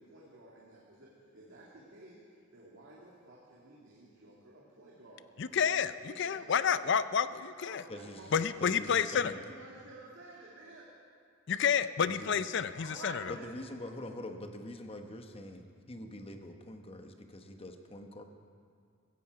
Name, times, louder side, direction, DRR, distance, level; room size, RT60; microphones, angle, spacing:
voice 1, 0.0-5.7 6.1-6.9 7.6-8.6 8.9-10.9 12.8-13.6, right 2 dB, 70° right, -5 dB, 2.2 m, -52 dB
voice 2, 5.4-7.8 8.3-9.3 11.5-13.2, left 7 dB, 60° left, 14 dB, 0.5 m, -30 dB
voice 3, 7.9-8.2 8.6-9.4 12.1-12.4 13.3-18.2, left 1 dB, 30° left, 5 dB, 1.0 m, -44 dB
16.0 x 15.0 x 4.8 m, 2.2 s
head